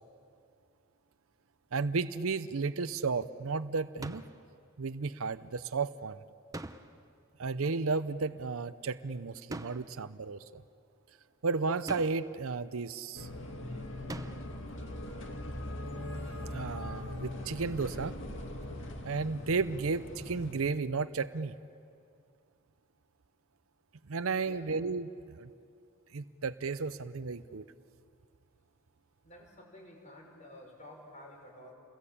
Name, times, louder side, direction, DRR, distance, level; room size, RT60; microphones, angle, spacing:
voice 1, 1.7-4.2 4.8-6.2 7.4-10.6 11.4-13.3 16.5-18.2 19.0-21.6 24.1-25.5 26.1-27.6, right 4 dB, 85° right, 13 dB, 0.7 m, -33 dB
sound 1, 4.0-4.5 6.5-7.2 9.5-10.1 11.9-12.4 14.1-14.6, right 2 dB, 15° right, 0.7 m, -43 dB
sound 2, 13.1-20.5, left 1 dB, 65° left, 2.3 m, -41 dB
voice 2, 24.3-24.7 29.2-31.7, left 1 dB, 35° left, 0 dB, 6.2 m, -51 dB
30.0 x 21.5 x 8.7 m, 2.4 s
head